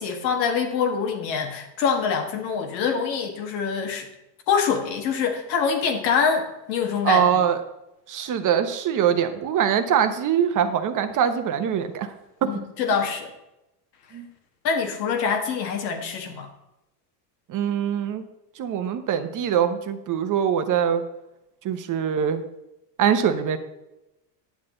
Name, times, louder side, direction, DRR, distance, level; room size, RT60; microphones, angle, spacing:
voice 1, 0.0-4.1 4.5-6.4 6.7-7.3 12.4-13.3 14.6-16.5, left 6 dB, 90° left, 3 dB, 1.9 m, -25 dB
voice 2, 7.0-7.6 8.1-12.1 12.4-12.5 14.1-14.3 17.5-18.2 18.6-21.0 21.6-22.4 23.0-23.6, right 8 dB, 40° right, 8 dB, 1.0 m, -23 dB
9.5 x 7.8 x 3.9 m, 0.91 s
supercardioid pair, 115°, 50 cm